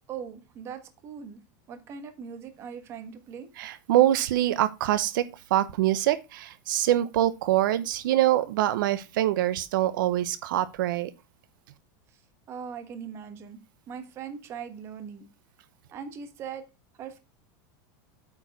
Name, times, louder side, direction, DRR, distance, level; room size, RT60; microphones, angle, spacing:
voice 1, 0.1-1.4 1.7-3.5 12.1-12.2 12.5-13.6 13.9-15.3 15.9-16.6 17.0-17.2, right 7 dB, 25° right, 1.2 m, -40 dB
voice 2, 3.6-11.1, right 13 dB, 85° right, 0.8 m, -24 dB
8.6 x 4.8 x 5.1 m
supercardioid pair, 175°, 11 cm